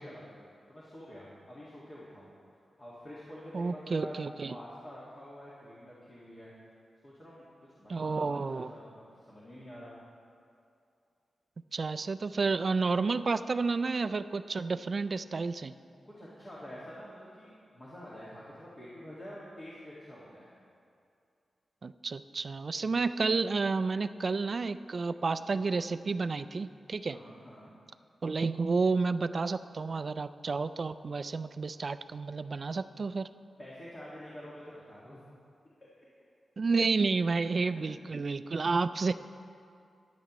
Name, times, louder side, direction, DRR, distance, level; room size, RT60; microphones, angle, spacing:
voice 1, 0.0-2.3 2.8-4.2 4.5-6.7 7.0-7.5 7.8-10.0 16.0-20.5 27.1-27.7 33.6-35.2 35.8-35.9 37.5-37.6, equal, 25° left, -8 dB, 1.8 m, -47 dB
voice 2, 3.5-4.6 7.9-8.7 11.7-15.7 21.8-27.2 28.2-33.3 36.6-39.1, right 4 dB, 40° right, 13 dB, 0.3 m, -30 dB
15.5 x 11.0 x 3.0 m, 2.5 s
wide cardioid pair, 160°, 0 cm